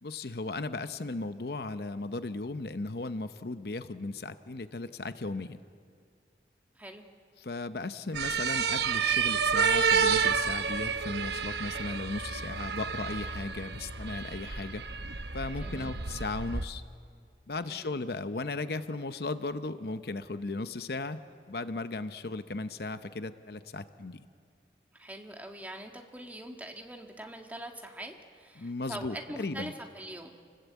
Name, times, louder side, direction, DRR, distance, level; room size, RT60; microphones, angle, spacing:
voice 1, 0.0-5.6 7.4-14.8 15.3-16.8 17.5-24.3 28.6-29.7, left 3 dB, 60° left, 11 dB, 0.8 m, -36 dB
sound 1, 8.1-16.6, right 6 dB, 70° right, 0.9 m, -30 dB
voice 2, 15.6-15.9 17.6-18.0 24.9-30.3, right 1 dB, 10° right, 2 dB, 1.8 m, -43 dB
29.0 x 20.0 x 8.3 m, 2.1 s
head